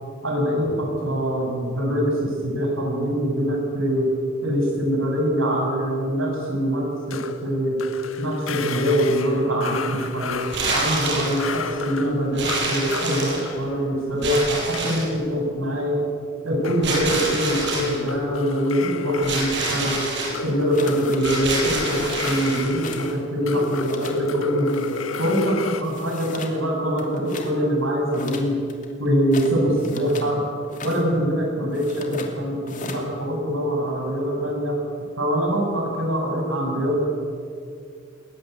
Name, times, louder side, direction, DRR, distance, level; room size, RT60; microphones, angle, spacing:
voice 1, 0.2-4.1 4.4-7.8 8.2-10.4 10.7-16.0 16.4-19.9 20.4-24.8 25.2-28.6 29.0-30.4 30.8-34.8 35.2-37.0, equal, 85° right, 0 dB, 7.7 m, -23 dB
sound 1, 7.1-15.6 16.6-25.8, left 4 dB, 90° left, 1.5 m, -32 dB
sound 2, 10.4-11.5 12.4-13.6 14.2-15.2 16.8-18.0 19.2-20.4 21.2-22.7, right 2 dB, 60° right, 6.4 m, -27 dB
sound 3, 20.7-21.2 21.5-22.4 22.8-23.2 23.4-24.2 24.7-25.5 25.8-26.6 26.9-27.5 28.1-30.3 30.6-31.0 31.7-32.3 32.7-33.1, left 4 dB, 40° left, 2.8 m, -39 dB
21.5 x 19.5 x 8.2 m, 2.3 s
head